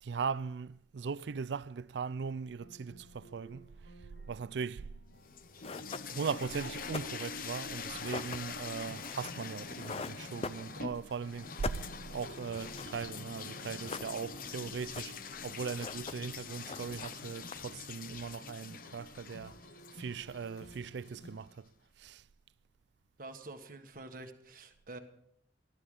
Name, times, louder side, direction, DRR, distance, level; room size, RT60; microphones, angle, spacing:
voice 1, 0.0-3.7 4.3-4.9 6.1-19.6 19.9-21.7 22.0-22.2, right 5 dB, 80° right, 0.4 m, -39 dB
sound 1, 2.6-21.4, right 1 dB, 75° left, 1.8 m, -57 dB
sound 2, 5.2-21.2, left 5 dB, 50° left, 0.8 m, -44 dB
sound 3, 5.2-5.3 5.6-11.1 11.4-13.0 13.2-13.3 13.6-14.5 14.8-15.4 15.6-16.4 16.6-17.9, left 4 dB, 35° left, 0.5 m, -43 dB
voice 2, 23.2-25.0, right 2 dB, 50° right, 1.5 m, -47 dB
19.0 x 12.5 x 3.8 m
head